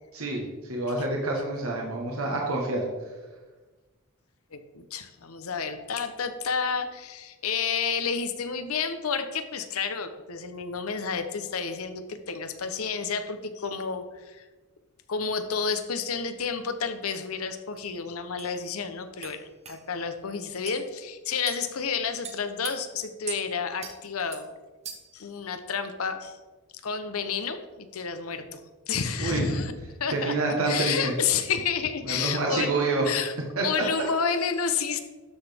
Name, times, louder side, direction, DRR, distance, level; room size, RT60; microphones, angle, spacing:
voice 1, 0.1-0.4 0.7-2.8 29.2-29.4 30.1-31.1 32.0-33.1 33.6-33.7, right 2 dB, 80° right, -1 dB, 1.4 m, -27 dB
voice 2, 4.5-14.5 15.1-24.5 25.1-26.4 26.8-28.6 28.9-29.7 30.0-32.8 33.0-33.3 33.6-35.0, left 6 dB, 90° left, 9 dB, 0.8 m, -30 dB
sound 1, 17.8-17.9 18.4-18.5 19.2-19.4 19.6-19.8 20.7-20.8 21.5-21.7 22.2-22.7 23.3-23.4 23.8-24.0 24.3-24.4 24.8-25.2, right 7 dB, 30° right, 1.0 m, -38 dB
12.5 x 6.2 x 3.5 m, 1.3 s
head